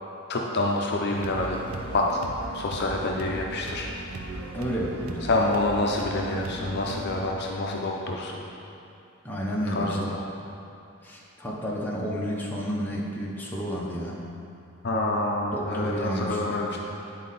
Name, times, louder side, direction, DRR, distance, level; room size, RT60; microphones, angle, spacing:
voice 1, 0.3-1.6 1.9-2.2 2.5-3.9 5.2-8.4 9.7-10.2 14.8-16.8, left 2 dB, 50° left, 0 dB, 0.6 m, -27 dB
sound 1, 1.1-7.3, right 2 dB, 90° right, 0.6 m, -38 dB
voice 2, 4.5-5.3 9.2-10.1 11.0-14.2 15.5-16.8, equal, 10° left, -5 dB, 0.9 m, -31 dB
9.5 x 4.2 x 4.0 m, 2.6 s
head